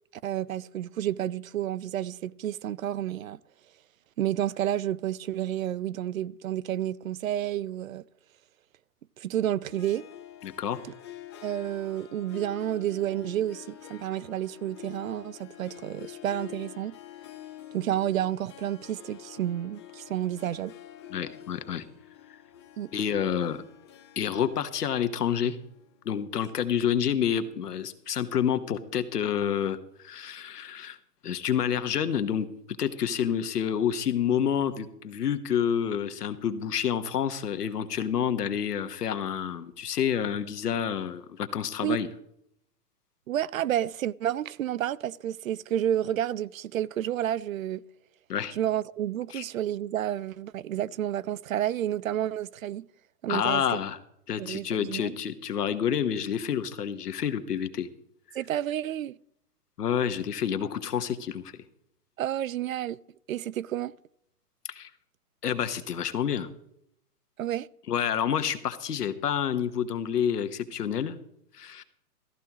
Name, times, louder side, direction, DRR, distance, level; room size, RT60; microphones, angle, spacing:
voice 1, 0.2-3.4 4.2-8.0 9.2-10.0 11.4-16.9 17.7-20.7 22.8-22.9 41.8-42.0 43.3-47.8 48.5-52.9 53.2-53.6 54.4-55.1 58.3-59.1 62.2-63.0 63.3-63.9 67.4-67.7, right 11 dB, 60° right, 0.5 m, -30 dB
Harp, 9.7-26.2, left 12 dB, 20° left, 0.6 m, -47 dB
voice 2, 10.4-10.8 21.1-21.8 22.9-23.6 24.1-25.6 26.0-31.0 31.2-32.5 32.8-42.1 48.3-48.5 49.3-49.4 53.3-54.0 54.3-57.9 59.8-61.4 64.7-64.9 65.4-66.5 67.9-71.2 71.5-71.8, left 8 dB, 75° left, 1.5 m, -28 dB
15.0 x 14.0 x 3.1 m
hypercardioid pair, 155°, 47 cm